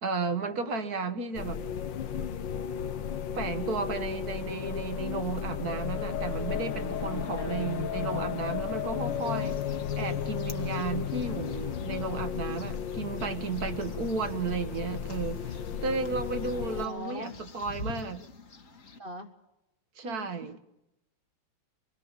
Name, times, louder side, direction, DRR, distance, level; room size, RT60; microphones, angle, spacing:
voice 1, 0.0-1.6 3.3-9.6 10.0-18.2 20.0-20.5, right 4 dB, 50° right, 1.8 m, -33 dB
sound 1, 1.3-16.9, left 8 dB, 70° left, 1.7 m, -34 dB
voice 2, 7.3-7.8 16.8-17.4 19.0-19.3 20.0-20.5, equal, 35° right, 1.1 m, -41 dB
sound 2, 9.0-19.0, left 2 dB, 40° left, 1.8 m, -47 dB
24.5 x 21.5 x 7.3 m
omnidirectional pair, 2.2 m